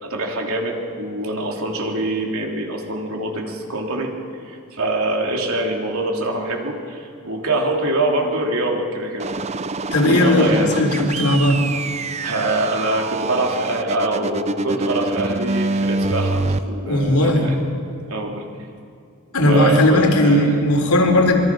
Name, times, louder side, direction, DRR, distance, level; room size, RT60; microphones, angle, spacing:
voice 1, 0.0-4.1 4.4-9.3 10.1-11.0 12.2-17.6 18.1-18.4 19.3-20.6, right 2 dB, 75° right, 1 dB, 3.4 m, -24 dB
sound 1, 9.2-16.6, right 3 dB, 30° right, 0.6 m, -25 dB
voice 2, 9.9-11.6 16.9-17.5 19.3-21.4, left 1 dB, 90° left, 3 dB, 3.7 m, -16 dB
26.5 x 23.0 x 6.2 m, 2.4 s
head